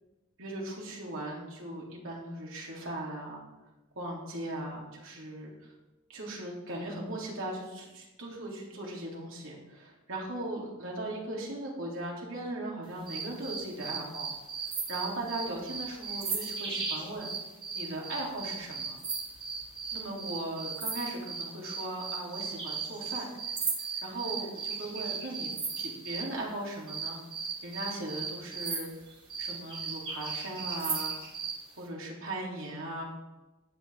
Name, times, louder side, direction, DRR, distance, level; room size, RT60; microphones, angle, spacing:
voice 1, 0.4-3.4 4.0-5.5 6.1-14.3 14.9-17.3 17.7-19.0 19.9-23.3 24.0-27.2 27.6-28.9 29.4-31.2 31.8-33.0, right 1 dB, 65° right, -3 dB, 3.4 m, -38 dB
sound 1, 13.1-26.3 26.9-31.6, right 5 dB, 25° right, 2.1 m, -36 dB
14.5 x 10.0 x 3.7 m, 1.1 s
head